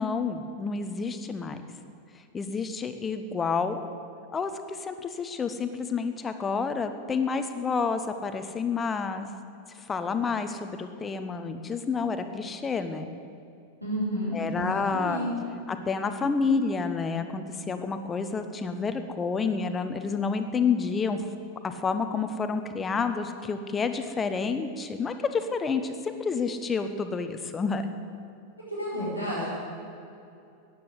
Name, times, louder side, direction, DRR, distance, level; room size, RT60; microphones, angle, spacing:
voice 1, 0.0-1.6 2.3-3.8 4.3-9.3 9.9-13.1 14.3-15.2 15.7-21.2 21.6-27.8, left 5 dB, 20° left, 8 dB, 1.0 m, -29 dB
voice 2, 13.8-15.3 28.7-29.5, equal, 85° right, -8 dB, 4.5 m, -31 dB
14.5 x 9.7 x 8.2 m, 2.6 s
figure-of-eight pair, 90°, 0 cm